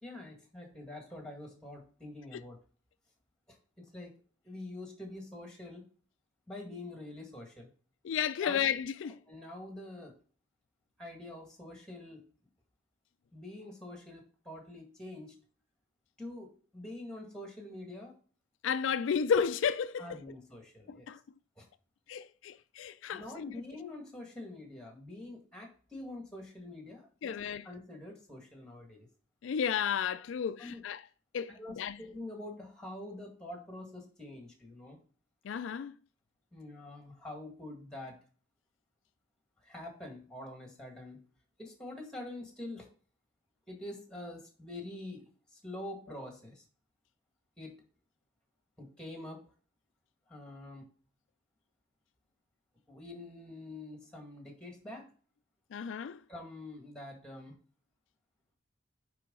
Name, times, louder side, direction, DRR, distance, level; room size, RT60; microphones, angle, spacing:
voice 1, 0.0-2.6 3.5-4.1 4.4-5.8 6.5-7.7 8.4-8.7 9.3-10.1 11.0-12.2 13.3-15.3 16.2-18.1 20.0-21.1 21.6-21.7 23.1-27.4 27.6-29.1 30.6-30.8 31.5-35.0 36.5-38.2 39.6-41.2 41.6-42.9 43.7-45.2 45.5-46.6 47.6-47.8 48.8-49.4 50.3-50.9 52.9-55.1 56.3-57.5, left 1 dB, 5° left, 1.8 m, -45 dB
voice 2, 8.0-9.2 18.6-20.2 20.9-21.2 22.1-23.5 27.2-27.6 29.4-31.0 31.3-32.0 35.4-35.9 55.7-56.2, left 7 dB, 80° left, 0.3 m, -32 dB
9.3 x 3.8 x 3.7 m
head